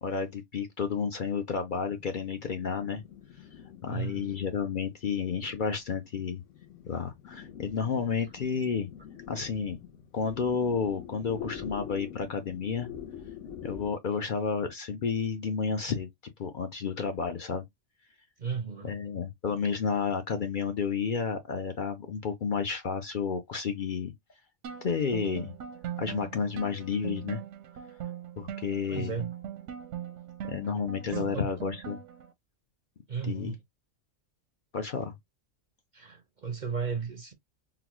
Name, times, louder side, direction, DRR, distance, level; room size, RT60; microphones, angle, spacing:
voice 1, 0.0-3.0 3.8-6.4 6.9-8.9 9.3-9.8 10.1-12.9 13.6-16.1 16.4-17.6 18.8-24.1 24.8-25.5 26.0-27.4 28.4-29.1 30.4-32.0 33.3-33.5 34.7-35.1, left 6 dB, 55° left, 0.6 m, -31 dB
sound 1, 1.7-14.0, left 8 dB, 85° left, 1.1 m, -46 dB
voice 2, 3.9-4.3 18.4-18.9 28.9-29.3 31.1-31.5 33.1-33.6 35.9-37.3, right 6 dB, 50° right, 0.6 m, -35 dB
sound 2, 24.6-32.3, right 10 dB, 75° right, 0.9 m, -40 dB
3.9 x 2.3 x 2.9 m
omnidirectional pair, 1.3 m